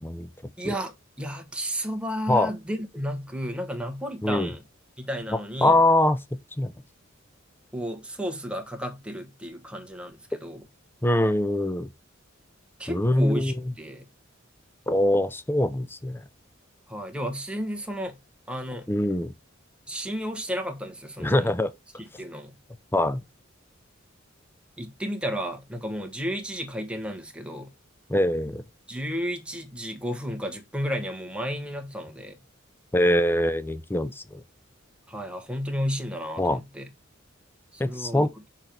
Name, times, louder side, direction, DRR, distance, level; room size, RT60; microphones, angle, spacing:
voice 1, 0.6-4.6 5.0-5.8 7.7-10.6 12.8-14.1 16.9-18.2 18.5-18.9 19.9-21.6 22.0-22.6 24.8-27.7 28.9-32.4 35.1-36.9 37.7-38.3, equal, 5° right, 1.2 m, -33 dB
voice 2, 5.3-6.7 11.0-11.9 12.9-13.6 14.9-16.2 18.9-19.3 21.2-21.7 22.9-23.2 28.1-28.6 32.9-34.4 36.4-36.6 37.8-38.3, left 1 dB, 10° left, 0.6 m, -23 dB
6.3 x 4.5 x 5.2 m
head